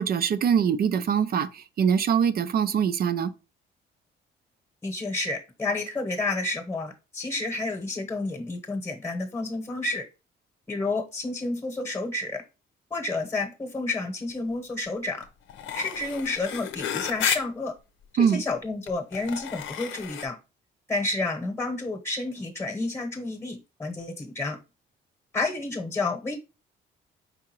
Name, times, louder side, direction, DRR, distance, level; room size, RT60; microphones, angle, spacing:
voice 1, 0.0-3.3 18.2-18.4, right 7 dB, 50° right, 0.4 m, -23 dB
voice 2, 4.8-10.0 10.7-12.4 12.9-15.3 15.7-17.7 18.2-20.4 20.9-24.6 25.3-26.4, left 2 dB, 10° left, 1.0 m, -30 dB
sound 1, 15.2-15.3 15.5-17.4 18.3-18.4 18.9-20.3, left 9 dB, 80° left, 0.7 m, -32 dB
4.8 x 3.7 x 2.9 m
cardioid pair, 90°, 20 cm